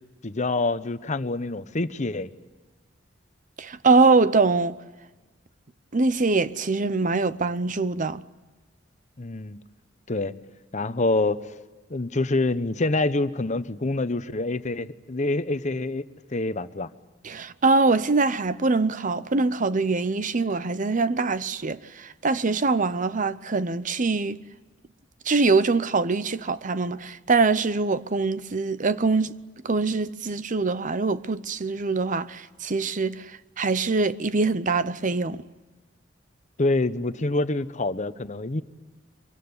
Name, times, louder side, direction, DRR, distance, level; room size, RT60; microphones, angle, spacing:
voice 1, 0.2-2.3 9.2-9.6 10.1-10.3 10.7-11.4 11.9-16.0 16.3-16.9 36.6-38.6, left 2 dB, 40° left, 1.0 m, -26 dB
voice 2, 3.6-4.7 5.9-8.2 17.2-24.4 25.3-29.4 29.6-33.3 33.6-35.4, right 3 dB, 45° right, 0.8 m, -23 dB
25.0 x 24.0 x 9.7 m
head